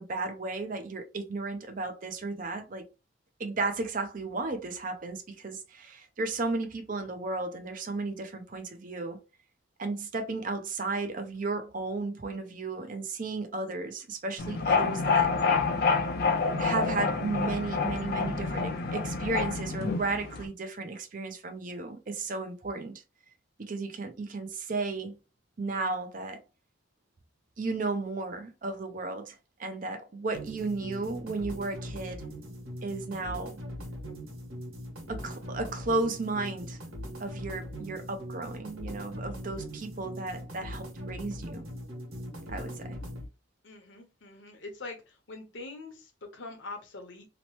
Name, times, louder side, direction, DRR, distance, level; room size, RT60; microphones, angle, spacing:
voice 1, 0.0-2.9 3.4-9.2 9.8-15.6 16.6-23.0 23.6-25.2 25.6-26.4 27.6-32.2 32.8-33.6 35.1-36.8 37.2-41.6 42.5-43.0, right 3 dB, 40° right, 0.5 m, -34 dB
sound 1, 14.4-20.5, left 4 dB, 50° left, 0.4 m, -28 dB
sound 2, 30.3-43.3, equal, 85° right, 1.3 m, -41 dB
voice 2, 43.6-47.3, left 3 dB, 65° left, 0.8 m, -44 dB
2.9 x 2.0 x 3.0 m
head